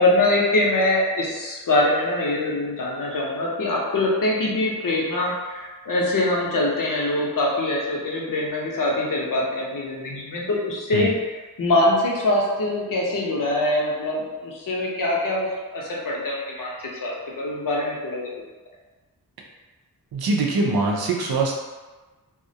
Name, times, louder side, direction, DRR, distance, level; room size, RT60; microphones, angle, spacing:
voice 1, 0.0-18.4, left 1 dB, 60° left, -3 dB, 0.6 m, -23 dB
voice 2, 20.1-21.6, right 3 dB, 80° right, -1 dB, 0.5 m, -23 dB
2.3 x 2.0 x 2.7 m, 1.2 s
wide cardioid pair, 110°, 36 cm